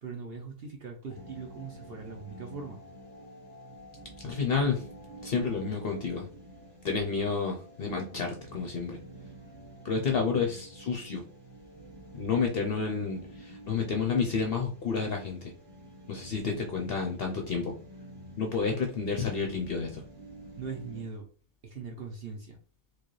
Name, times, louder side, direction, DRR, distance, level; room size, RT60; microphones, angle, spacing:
voice 1, 0.0-2.8 20.6-21.3 21.6-22.6, right 5 dB, 55° right, 2 dB, 0.7 m, -40 dB
sound 1, 1.1-21.0, right 1 dB, 20° right, 1.3 m, -49 dB
voice 2, 4.2-4.8 5.2-6.3 6.8-9.0 9.8-11.2 12.1-15.5 16.1-17.7 18.4-20.0, left 5 dB, 55° left, 2 dB, 0.7 m, -30 dB
4.5 x 2.3 x 3.1 m, 0.39 s
omnidirectional pair, 1.5 m